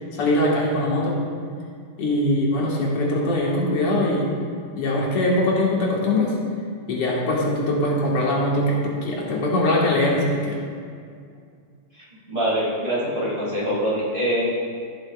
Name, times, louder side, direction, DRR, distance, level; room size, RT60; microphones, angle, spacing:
voice 1, 0.1-1.2 2.0-4.3 4.8-6.3 6.9-10.6, left 1 dB, 90° left, -4 dB, 2.6 m, -22 dB
voice 2, 12.3-14.5, equal, 30° right, -7 dB, 2.5 m, -24 dB
14.0 x 7.8 x 2.4 m, 2.2 s
omnidirectional pair, 2.4 m